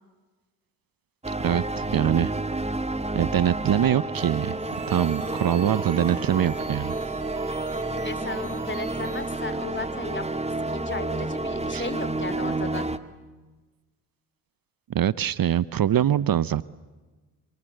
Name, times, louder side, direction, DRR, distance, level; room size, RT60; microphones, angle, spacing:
sound 1, 1.2-13.0, right 2 dB, 15° right, 1.6 m, -30 dB
voice 1, 1.4-2.3 3.1-4.5 4.9-6.9 11.7-11.9 14.9-16.7, right 10 dB, 55° right, 19 dB, 0.8 m, -23 dB
sound 2, 4.5-9.5, right 6 dB, 70° right, 4.7 m, -45 dB
voice 2, 8.0-10.2 10.7-12.9, left 3 dB, 25° left, 13 dB, 3.2 m, -35 dB
27.5 x 26.0 x 8.0 m, 1.2 s
supercardioid pair, 50°, 43 cm